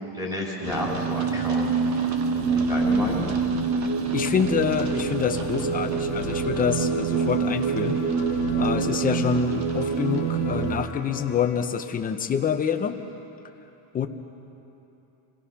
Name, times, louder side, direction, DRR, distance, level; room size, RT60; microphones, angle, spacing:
voice 1, 0.1-1.7 2.3-3.3, left 1 dB, 5° right, -3 dB, 3.4 m, -31 dB
sound 1, 0.6-10.8, right 5 dB, 35° right, 1.2 m, -25 dB
sound 2, 2.4-11.6, left 7 dB, 35° left, 1.6 m, -45 dB
voice 2, 4.1-8.0 8.6-13.0 13.9-14.1, left 8 dB, 20° left, 6 dB, 0.5 m, -26 dB
28.0 x 19.0 x 5.7 m, 2.9 s
cardioid pair, 175°, 48 cm